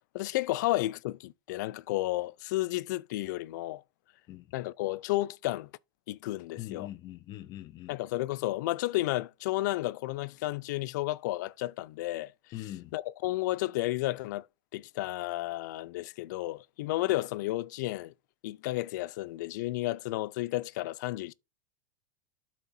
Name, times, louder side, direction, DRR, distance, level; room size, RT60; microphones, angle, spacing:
voice 1, 0.1-3.8 4.5-5.7 6.1-6.9 7.9-12.3 12.9-14.5 14.7-18.1 18.4-21.3, left 18 dB, 75° left, 0.4 m, -32 dB
voice 2, 6.6-8.0 12.5-12.9, left 14 dB, 45° left, 0.7 m, -42 dB
13.0 x 4.3 x 2.6 m
supercardioid pair, 115°, 10 cm